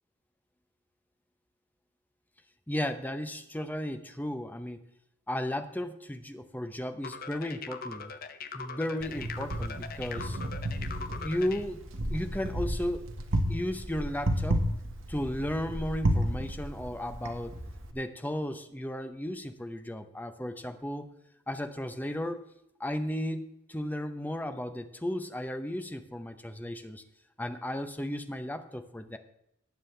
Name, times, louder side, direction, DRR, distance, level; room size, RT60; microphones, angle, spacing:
voice 1, 2.7-4.8 5.3-8.1 8.5-10.4 11.1-11.8 12.1-13.1 13.5-14.6 15.1-17.6 17.9-21.1 21.5-22.4 22.8-23.4 23.7-27.0 27.4-29.2, left 1 dB, 10° left, 8 dB, 0.7 m, -34 dB
sound 1, 7.0-11.6, left 5 dB, 45° left, 0.7 m, -41 dB
Wind, 9.0-17.9, right 1 dB, 70° right, 1.4 m, -32 dB
18.5 x 7.4 x 3.3 m, 0.80 s
head